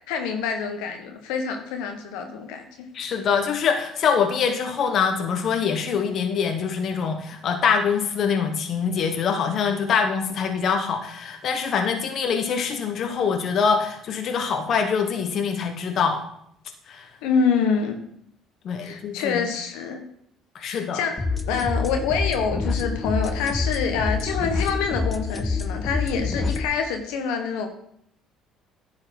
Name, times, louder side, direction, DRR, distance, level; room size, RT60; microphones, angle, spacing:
voice 1, 0.1-2.9 17.2-18.0 18.8-20.0 20.6-21.2 21.5-27.7, left 6 dB, 80° left, 5 dB, 1.4 m, -26 dB
voice 2, 2.9-16.2 16.9-17.1 18.6-19.4 20.5-21.0 26.1-26.3, left 6 dB, 55° left, 5 dB, 1.2 m, -24 dB
sound 1, 21.2-26.6, left 4 dB, 25° left, 0.8 m, -27 dB
10.5 x 4.8 x 6.0 m, 0.69 s
supercardioid pair, 75°, 0 cm